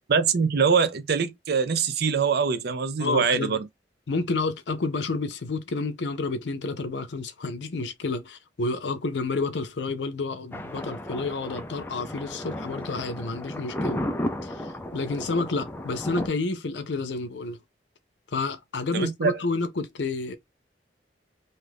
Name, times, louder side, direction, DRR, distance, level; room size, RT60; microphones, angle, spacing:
voice 1, 0.1-3.7 18.9-19.4, right 5 dB, 65° right, 0.5 m, -23 dB
voice 2, 3.0-3.6 4.1-14.0 14.4-14.5 14.9-17.6 18.3-20.4, left 3 dB, 80° left, 0.6 m, -30 dB
Thunder, 10.5-16.3, left 1 dB, 10° left, 0.4 m, -34 dB
2.6 x 2.4 x 3.4 m
head